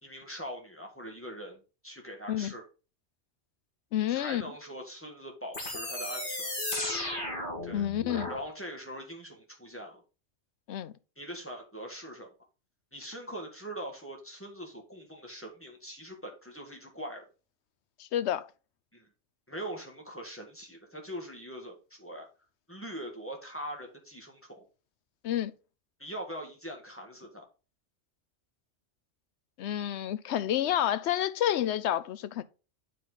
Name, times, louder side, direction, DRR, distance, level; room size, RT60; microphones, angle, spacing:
voice 1, 0.0-2.6 4.1-6.5 7.6-7.9 8.3-10.0 11.2-12.3 12.9-17.2 18.9-19.1 19.5-22.3 22.7-24.7 26.0-27.5, equal, 10° left, 1.7 m, -42 dB
voice 2, 3.9-4.4 7.7-8.3 10.7-10.9 18.0-18.5 25.2-25.5 29.6-32.4, left 11 dB, 70° left, 0.8 m, -29 dB
sound 1, 5.5-8.4, left 1 dB, 45° left, 2.3 m, -34 dB
8.5 x 5.1 x 4.0 m
omnidirectional pair, 1.2 m